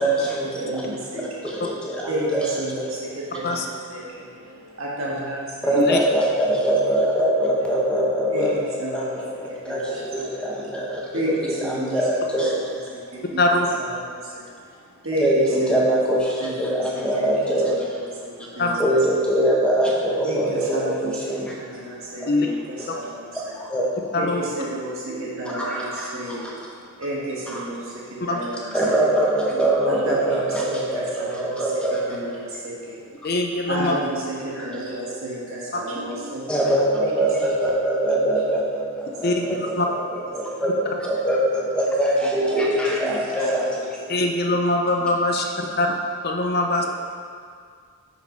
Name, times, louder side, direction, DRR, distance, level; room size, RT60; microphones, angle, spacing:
voice 1, 0.0-1.0 1.4-2.9 5.6-12.6 15.2-18.0 18.8-21.6 22.2-22.3 22.8-22.9 23.3-23.9 25.5-26.4 27.5-27.7 28.7-32.2 33.2-33.3 34.5-34.7 36.5-44.0, right 1 dB, 5° left, -4 dB, 0.9 m, -23 dB
voice 2, 0.6-1.7 2.1-5.8 6.4-6.5 8.3-10.7 11.1-12.0 12.4-13.4 13.8-16.0 16.4-17.3 17.7-19.0 20.2-23.6 24.2-29.0 29.5-31.7 32.1-33.2 33.7-36.6 37.0-37.1 39.1-39.3 40.5-40.6 42.2-44.1 45.6-45.7, right 1 dB, 65° right, -5 dB, 1.6 m, -32 dB
voice 3, 18.6-18.9 22.3-22.5 24.1-24.4 28.2-28.4 33.2-34.0 39.2-39.9 44.1-45.9 46.2-46.9, left 2 dB, 45° left, 2 dB, 0.7 m, -22 dB
5.8 x 5.1 x 5.2 m, 2.2 s
head